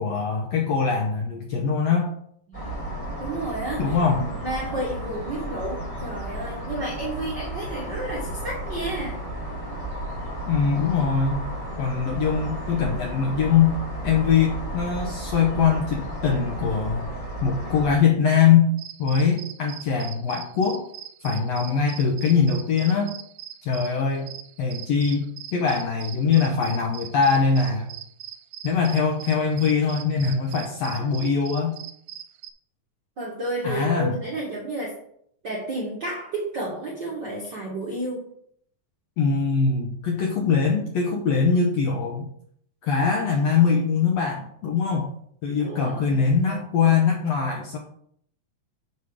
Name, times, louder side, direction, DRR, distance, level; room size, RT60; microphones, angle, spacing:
voice 1, 0.0-2.1 3.8-4.3 10.5-11.4 11.8-13.8 14.0-17.0 17.4-18.7 19.0-20.8 21.2-23.2 23.6-24.3 24.6-27.9 28.6-31.8 33.6-34.2 39.2-42.3 42.8-45.1 45.4-47.8, left 6 dB, 75° left, 1 dB, 1.5 m, -22 dB
sound 1, 2.5-18.0, right 1 dB, 15° left, 1.6 m, -33 dB
voice 2, 3.2-9.2 33.2-35.0 35.4-38.2 45.6-46.2, right 1 dB, 60° right, -3 dB, 1.1 m, -31 dB
sound 2, 18.8-32.5, right 11 dB, 80° right, 2.1 m, -41 dB
6.7 x 5.5 x 4.8 m, 0.67 s
omnidirectional pair, 4.0 m